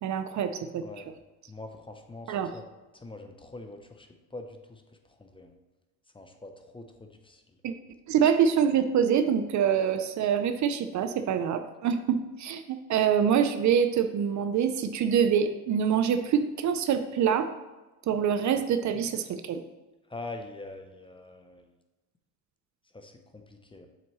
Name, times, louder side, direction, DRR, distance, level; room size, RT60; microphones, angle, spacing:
voice 1, 0.0-0.8 2.3-2.5 7.6-7.7 8.1-17.5 18.1-19.6, right 8 dB, 50° right, 9 dB, 0.5 m, -25 dB
voice 2, 1.5-2.6 2.9-4.8 5.1-5.5 6.1-7.4 20.1-21.6 22.9-23.9, left 2 dB, 15° left, 5 dB, 0.6 m, -44 dB
7.3 x 5.8 x 3.1 m, 1.1 s
cardioid pair, 105°, 39 cm